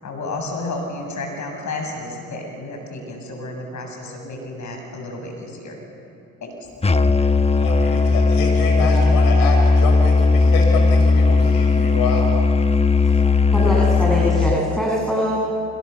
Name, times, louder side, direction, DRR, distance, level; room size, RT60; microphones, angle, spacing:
voice 1, 0.0-5.8 6.4-6.7, left 2 dB, 55° left, 2 dB, 7.7 m, -31 dB
Musical instrument, 6.8-14.6, left 4 dB, 20° left, 1.0 m, -16 dB
voice 2, 7.5-12.3, left 3 dB, 80° left, 2 dB, 6.8 m, -27 dB
voice 3, 13.5-15.4, equal, ahead, -4 dB, 7.0 m, -22 dB
28.5 x 27.5 x 7.1 m, 2.7 s
supercardioid pair, 60°, 34 cm